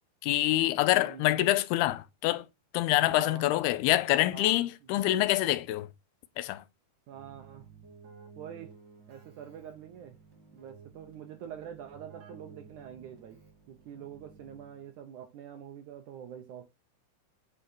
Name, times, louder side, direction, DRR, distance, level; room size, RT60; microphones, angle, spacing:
voice 1, 0.2-2.5 2.7-5.9 6.4-6.6, left 16 dB, 90° left, 2.6 m, -26 dB
voice 2, 0.9-1.5 3.0-3.5 4.3-4.7 7.1-7.7 8.4-8.8 9.1-10.2 10.5-13.4 13.7-16.7, right 9 dB, 75° right, 1.9 m, -45 dB
Keyboard (musical), 7.1-15.0, right 4 dB, 30° right, 2.8 m, -54 dB
8.7 x 4.5 x 4.4 m
omnidirectional pair, 4.4 m